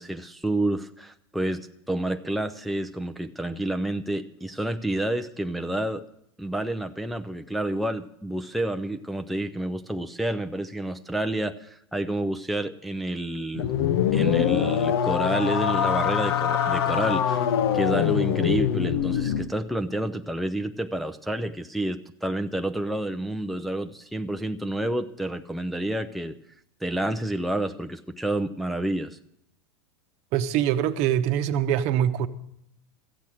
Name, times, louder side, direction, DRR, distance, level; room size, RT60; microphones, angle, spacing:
voice 1, 0.0-6.0 6.4-13.7 14.1-17.4 17.7-26.4 26.8-29.2, right 1 dB, ahead, 0.5 m, -29 dB
sound 1, 13.5-19.5, left 9 dB, 75° left, 0.9 m, -24 dB
voice 2, 30.3-32.3, right 10 dB, 55° right, 0.9 m, -23 dB
14.0 x 8.3 x 7.6 m
hypercardioid pair, 105°, 14 cm